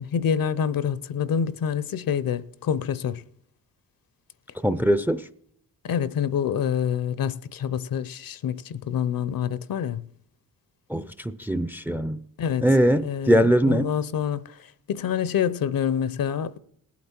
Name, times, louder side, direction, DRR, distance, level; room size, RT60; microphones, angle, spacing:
voice 1, 0.0-3.2 5.8-10.1 12.4-12.7 13.0-14.4 14.9-16.6, left 8 dB, 60° left, 0.7 m, -26 dB
voice 2, 4.6-5.2 10.9-12.2 12.6-13.9, equal, 5° right, 0.5 m, -21 dB
19.0 x 8.4 x 4.4 m
cardioid pair, 60°, 38 cm